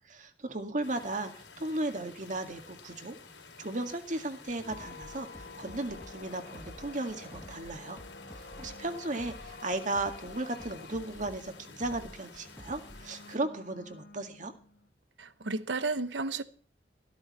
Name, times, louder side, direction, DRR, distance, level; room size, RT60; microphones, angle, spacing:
voice 1, 0.1-3.2 3.6-8.0 8.6-14.5, right 2 dB, 45° right, 2.0 m, -35 dB
sound 1, 0.8-13.4, left 4 dB, 80° left, 3.3 m, -52 dB
sound 2, 4.5-14.9, left 3 dB, 60° left, 1.5 m, -50 dB
sound 3, 4.5-13.1, equal, 15° left, 1.3 m, -51 dB
voice 2, 15.2-16.4, right 3 dB, 80° right, 1.1 m, -32 dB
14.5 x 13.0 x 4.2 m
head